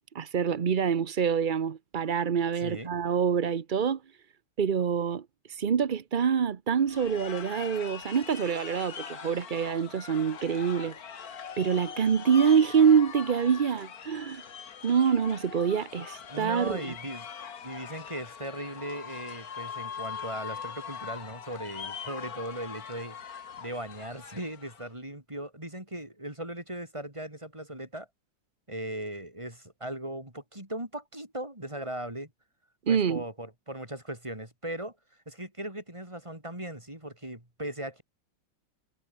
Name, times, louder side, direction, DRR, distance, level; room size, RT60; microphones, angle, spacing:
voice 1, 0.1-4.0 4.6-10.9 11.6-14.4 14.8-16.8 32.9-33.2, right 7 dB, 55° right, 0.5 m, -26 dB
voice 2, 2.6-2.9 16.3-17.3 17.6-28.1 28.7-32.3 32.9-35.0 35.3-38.0, right 1 dB, 15° right, 5.3 m, -38 dB
sound 1, 6.9-24.9, left 7 dB, 50° left, 1.8 m, -42 dB
omnidirectional pair, 2.1 m